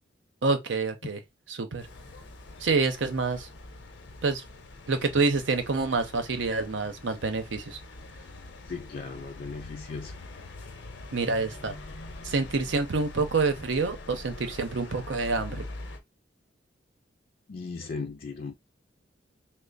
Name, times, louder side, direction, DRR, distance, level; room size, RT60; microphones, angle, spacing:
voice 1, 0.4-1.2 1.5-1.9 2.6-3.5 4.2-4.4 4.9-7.8 11.1-11.8 12.2-15.6, right 4 dB, 90° right, 0.7 m, -27 dB
sound 1, 1.8-16.0, left 2 dB, 80° left, 0.8 m, -44 dB
voice 2, 8.6-10.2 17.5-18.5, left 4 dB, 50° left, 0.4 m, -37 dB
3.3 x 2.0 x 3.9 m
head